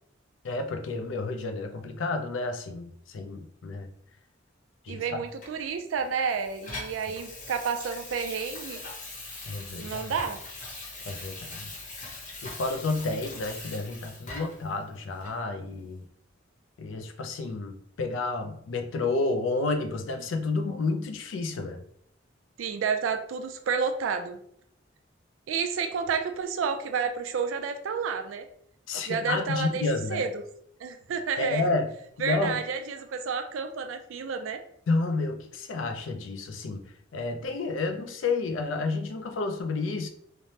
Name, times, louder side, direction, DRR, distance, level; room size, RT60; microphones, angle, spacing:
voice 1, 0.4-3.9 4.8-5.2 9.5-10.0 11.1-11.7 12.4-16.0 16.8-21.8 28.9-30.3 31.4-31.9 32.2-32.6 34.9-36.8 37.1-40.1, left 3 dB, 75° left, 7 dB, 0.4 m, -30 dB
voice 2, 4.9-8.8 9.8-10.4 22.6-24.4 25.5-28.5 29.1-30.4 30.8-31.7 32.2-34.6, right 6 dB, 90° right, 6 dB, 0.4 m, -30 dB
Water tap faucet / Sink (filling or washing), 5.4-14.7 15.2-15.4, left 2 dB, 45° left, 0.7 m, -41 dB
3.2 x 2.0 x 2.7 m, 0.68 s
head